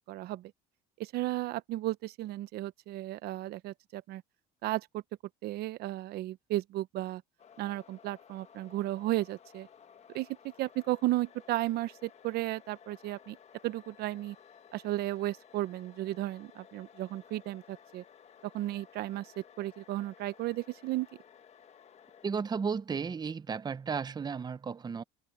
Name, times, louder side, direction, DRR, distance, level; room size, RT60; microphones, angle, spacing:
voice 1, 0.1-0.5 1.0-4.2 4.6-5.0 5.4-7.2 7.6-9.7 10.1-10.3 10.6-13.4 13.6-14.3 14.7-18.0 18.5-21.1, right 16 dB, 65° right, 1.0 m, -34 dB
sound 1, 7.4-22.3, left 8 dB, 40° left, 1.7 m, -57 dB
voice 2, 22.2-25.0, right 5 dB, 25° right, 0.9 m, -34 dB
supercardioid pair, 105°, 18 cm